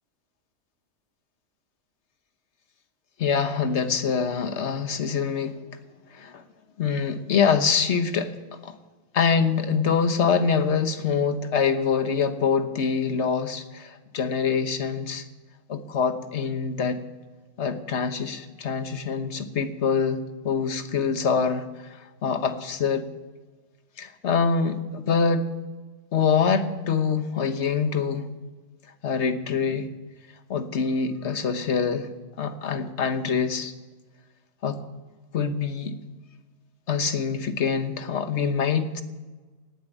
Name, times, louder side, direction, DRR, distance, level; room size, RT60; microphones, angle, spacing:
voice 1, 3.2-5.6 6.1-6.4 6.8-8.3 8.6-8.7 9.1-15.2 15.7-17.0 17.6-21.7 22.2-23.1 24.0-25.5 26.1-28.3 29.0-29.9 30.5-32.1 32.4-33.7 34.6-34.8 35.3-36.0 36.9-39.0, left 6 dB, 50° left, 9 dB, 1.3 m, -25 dB
18.0 x 7.6 x 9.0 m, 1.3 s
omnidirectional pair, 1.5 m